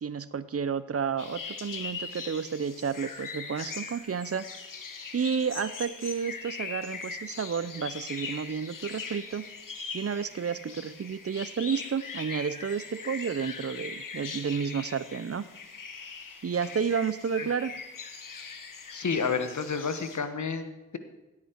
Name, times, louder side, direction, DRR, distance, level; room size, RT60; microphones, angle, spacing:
voice 1, 0.0-4.5 5.1-9.5 9.9-15.5 16.4-17.7, right 6 dB, 50° right, 16 dB, 0.6 m, -31 dB
sound 1, 1.2-20.2, left 5 dB, 85° left, 1.3 m, -41 dB
voice 2, 18.9-21.0, left 5 dB, 65° left, 9 dB, 1.2 m, -30 dB
16.5 x 8.6 x 4.5 m, 1.0 s
cardioid pair, 45°, 31 cm